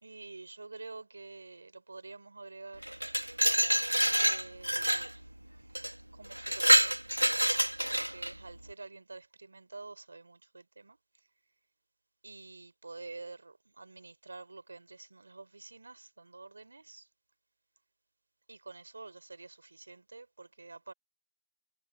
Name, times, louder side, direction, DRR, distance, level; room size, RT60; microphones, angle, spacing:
voice 1, 0.0-3.0 4.2-5.8 6.1-6.9 7.9-11.0 12.2-17.1 18.5-20.9, right 3 dB, 20° right, 3.7 m, -48 dB
Glass, 2.8-5.1 5.7-5.9 6.3-8.3, right 1 dB, 85° right, 1.2 m, -27 dB
figure-of-eight pair, 175°, 0 cm